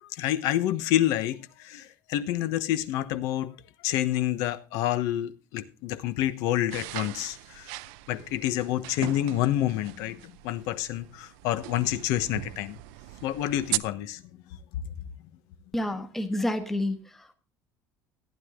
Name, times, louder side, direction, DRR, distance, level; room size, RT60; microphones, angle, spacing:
voice 1, 0.0-3.5 3.8-7.7 8.1-12.8 13.2-14.2, left 13 dB, 65° left, 1.1 m, -28 dB
sound 1, 6.7-13.8, right 19 dB, 80° right, 0.6 m, -38 dB
voice 2, 15.7-17.3, left 1 dB, 5° left, 1.2 m, -29 dB
15.0 x 9.9 x 3.8 m
cardioid pair, 175°, 6 cm